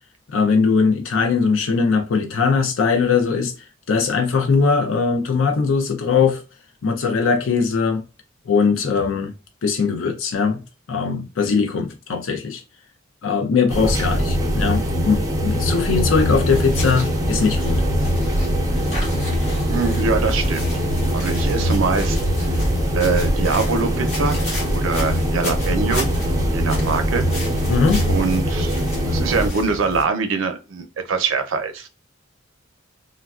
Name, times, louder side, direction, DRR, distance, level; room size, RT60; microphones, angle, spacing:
voice 1, 0.3-3.5 3.9-6.4 6.8-8.0 8.5-9.3 9.6-10.6 10.9-12.6 13.2-17.8 27.7-28.1, left 5 dB, 85° left, 0.4 m, -20 dB
sound 1, 13.7-29.5, equal, 20° right, 0.5 m, -22 dB
sound 2, 16.4-30.0, equal, 35° left, 1.4 m, -30 dB
voice 2, 19.7-20.7 21.1-22.6 22.9-24.4 24.7-26.1 26.5-27.2 28.1-28.8 29.1-31.9, right 4 dB, 85° right, 0.5 m, -23 dB
3.3 x 2.3 x 2.3 m
head